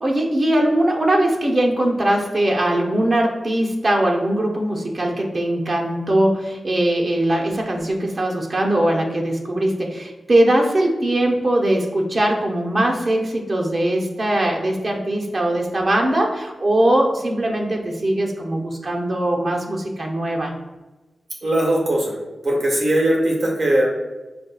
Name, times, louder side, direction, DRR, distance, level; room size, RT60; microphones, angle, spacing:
voice 1, 0.0-20.5, right 1 dB, 50° right, 0 dB, 0.7 m, -20 dB
voice 2, 21.4-22.2 22.4-23.9, right 1 dB, 70° right, -2 dB, 1.2 m, -19 dB
5.1 x 2.3 x 2.3 m, 1.1 s
cardioid pair, 70°, 0 cm